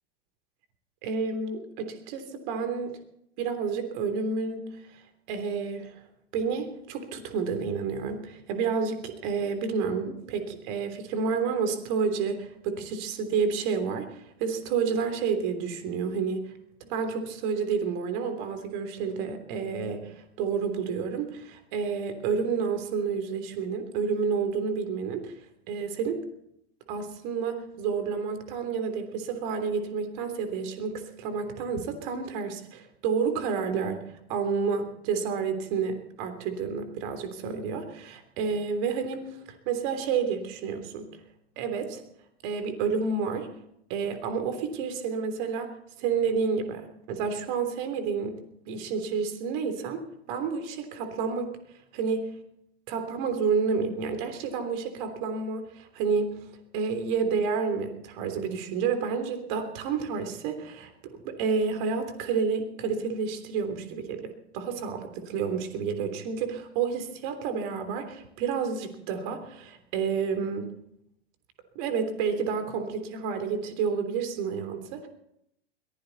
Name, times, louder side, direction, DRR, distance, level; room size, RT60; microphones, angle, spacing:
voice 1, 1.0-3.0 3.4-5.0 5.3-6.0 6.3-16.4 16.8-25.3 25.7-26.2 26.9-34.0 34.3-39.4 39.6-41.1 41.6-42.0 42.4-43.5 43.9-45.7 46.0-48.4 48.7-50.0 50.3-51.5 51.9-52.2 52.9-56.5 56.7-70.7 71.7-75.1, right 5 dB, 45° right, 8 dB, 3.3 m, -30 dB
22.0 x 15.5 x 4.1 m, 0.76 s
figure-of-eight pair, 100°, 32 cm